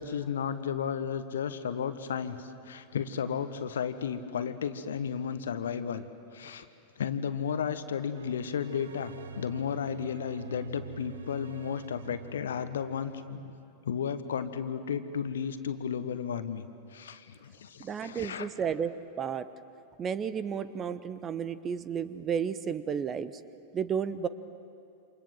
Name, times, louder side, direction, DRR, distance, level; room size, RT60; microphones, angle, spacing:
voice 1, 0.0-6.1 6.3-6.7 7.0-13.5 13.8-16.6 16.9-18.5, left 7 dB, 65° left, 11 dB, 1.3 m, -33 dB
sound 1, 8.1-13.3, right 5 dB, 65° right, 0.9 m, -46 dB
voice 2, 17.8-19.5 20.0-23.3 23.7-24.3, right 7 dB, 25° right, 15 dB, 1.0 m, -32 dB
28.5 x 27.0 x 7.7 m, 2.5 s
figure-of-eight pair, 90°, 0 cm